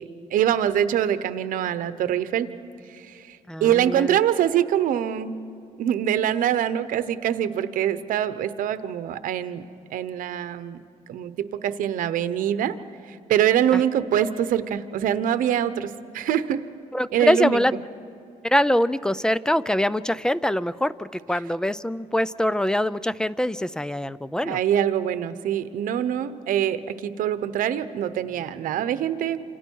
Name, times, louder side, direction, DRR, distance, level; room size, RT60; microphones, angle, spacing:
voice 1, 0.0-2.5 2.9-5.4 5.8-9.6 9.9-10.8 11.1-12.8 13.1-16.6 17.1-17.6 24.4-29.4, right 10 dB, 85° right, 12 dB, 0.9 m, -24 dB
voice 2, 3.5-4.2 16.9-17.7 18.4-24.6, left 1 dB, 5° left, 17 dB, 0.4 m, -23 dB
28.5 x 26.5 x 4.7 m, 2.7 s
cardioid pair, 125°, 14 cm